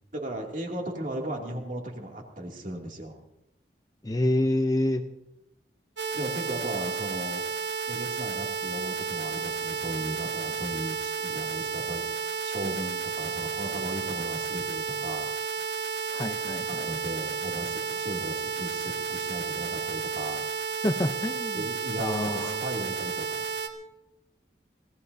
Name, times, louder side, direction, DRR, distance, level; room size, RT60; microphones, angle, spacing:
voice 1, 0.1-3.2 6.1-7.4 7.9-15.3 16.7-20.4 21.5-23.5, right 1 dB, 45° right, 0 dB, 2.6 m, -36 dB
voice 2, 4.0-5.0 16.1-16.9 20.8-21.6 22.0-22.6, left 1 dB, 20° left, 6 dB, 0.7 m, -27 dB
sound 1, 6.0-23.7, right 6 dB, 85° right, 1.5 m, -32 dB
25.5 x 17.0 x 2.7 m, 0.87 s
head